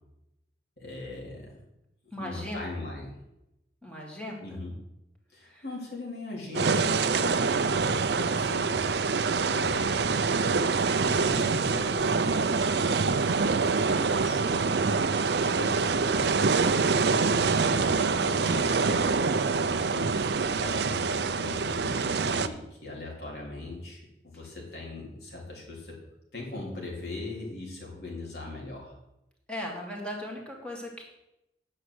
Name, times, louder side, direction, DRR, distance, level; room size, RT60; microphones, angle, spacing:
voice 1, 0.8-1.6 2.2-3.2 4.4-4.7 5.3-8.8 9.5-10.2 10.9-14.9 15.6-16.4 17.2-26.0 26.3-28.9, left 2 dB, 65° left, -3 dB, 3.7 m, -40 dB
voice 2, 2.1-2.7 3.8-4.6 5.4-5.6 15.4-15.8 16.9-17.1 29.5-31.0, left 1 dB, 5° left, -1 dB, 2.4 m, -38 dB
sound 1, 6.5-22.5, right 4 dB, 70° right, 0.6 m, -25 dB
9.8 x 6.6 x 7.8 m, 0.88 s
head